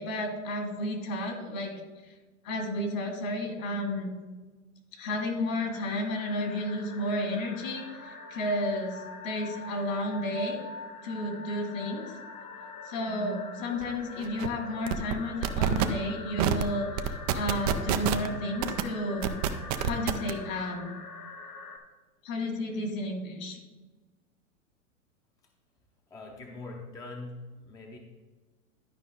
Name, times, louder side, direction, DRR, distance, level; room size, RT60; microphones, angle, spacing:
voice 1, 0.0-1.8 2.4-4.1 5.0-10.6 11.0-12.1 12.8-19.4 19.8-20.9 22.2-23.6, left 1 dB, 65° left, 2 dB, 2.6 m, -32 dB
sound 1, 5.6-21.8, left 4 dB, 90° left, 1.4 m, -44 dB
sound 2, 13.8-13.9 14.2-14.5 14.9-15.2 15.4-15.9 16.4-16.6 17.0-18.3 18.6-18.8 19.2-20.3, right 10 dB, 30° right, 0.4 m, -27 dB
voice 2, 26.1-28.0, left 2 dB, 10° left, 1 dB, 0.7 m, -42 dB
11.5 x 5.1 x 3.8 m, 1.3 s
hypercardioid pair, 120°, 43 cm